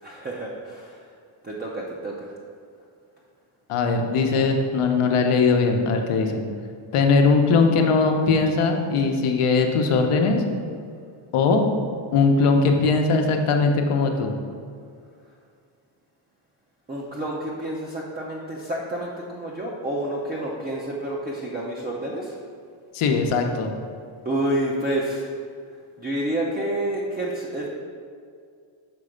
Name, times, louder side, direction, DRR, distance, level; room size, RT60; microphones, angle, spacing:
voice 1, 0.0-1.0 1.4-2.4 16.9-22.3 24.2-25.3 26.0-27.7, right 1 dB, 20° right, -4 dB, 0.5 m, -29 dB
voice 2, 3.7-6.4 6.9-10.4 11.3-11.8 12.1-14.3 22.9-23.7, left 4 dB, 80° left, 4 dB, 0.9 m, -20 dB
6.0 x 4.3 x 5.0 m, 2.2 s
wide cardioid pair, 150°, 50 cm